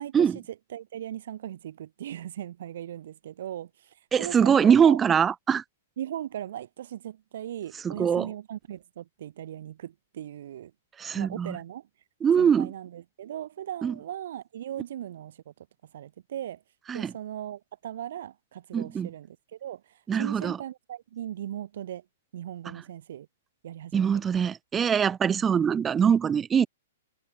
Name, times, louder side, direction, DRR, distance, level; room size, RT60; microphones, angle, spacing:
voice 1, 0.0-5.0 6.0-10.7 11.1-11.9 12.4-15.5 15.9-16.6 16.9-22.0 22.3-23.3 23.6-24.2, right 11 dB, 60° right, 5.9 m, -38 dB
voice 2, 4.1-5.6 7.8-8.3 11.0-11.6 12.2-12.7 13.8-13.9 16.9-17.1 18.7-19.1 20.1-20.6 23.9-26.7, right 7 dB, 15° right, 0.8 m, -23 dB
hypercardioid pair, 150°, 0 cm